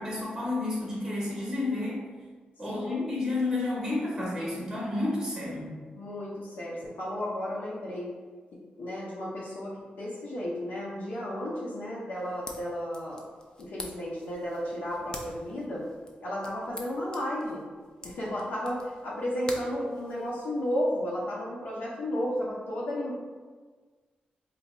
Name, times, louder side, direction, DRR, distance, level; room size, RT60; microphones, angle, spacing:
voice 1, 0.0-2.0 2.6-5.7, left 2 dB, 10° right, -6 dB, 0.7 m, -31 dB
voice 2, 2.6-3.1 5.9-8.1 8.5-13.3 13.6-15.9 16.2-17.6 18.0-23.1, equal, 90° left, -6 dB, 0.6 m, -33 dB
sound 1, 12.1-20.7, left 2 dB, 25° left, 0.4 m, -47 dB
2.6 x 2.2 x 4.1 m, 1.5 s
wide cardioid pair, 150°, 3 cm